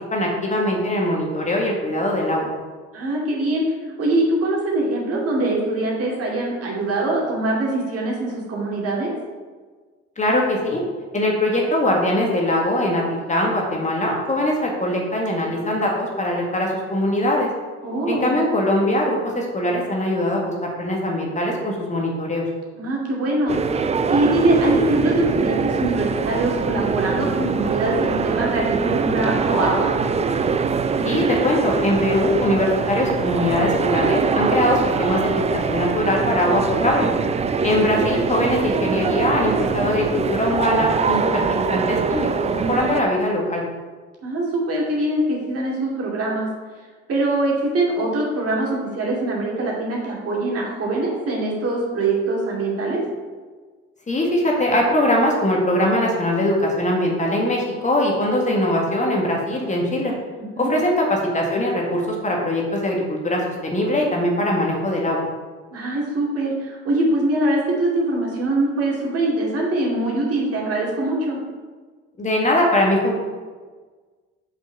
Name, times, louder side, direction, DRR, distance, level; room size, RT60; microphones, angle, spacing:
voice 1, 0.1-2.5 10.2-10.8 11.1-17.5 18.1-22.4 31.0-37.1 37.6-43.6 54.1-60.1 60.6-65.2 72.2-73.2, left 1 dB, 20° left, -1 dB, 1.7 m, -21 dB
voice 2, 2.9-3.6 4.0-9.1 17.8-18.3 22.8-23.6 24.1-29.9 37.9-38.1 44.2-46.5 47.1-53.0 60.4-60.7 65.7-71.4, right 2 dB, 45° right, -3 dB, 2.6 m, -23 dB
sound 1, 23.5-43.0, right 5 dB, 20° right, 0.5 m, -23 dB
5.9 x 5.4 x 5.7 m, 1.4 s
figure-of-eight pair, 55°, 33 cm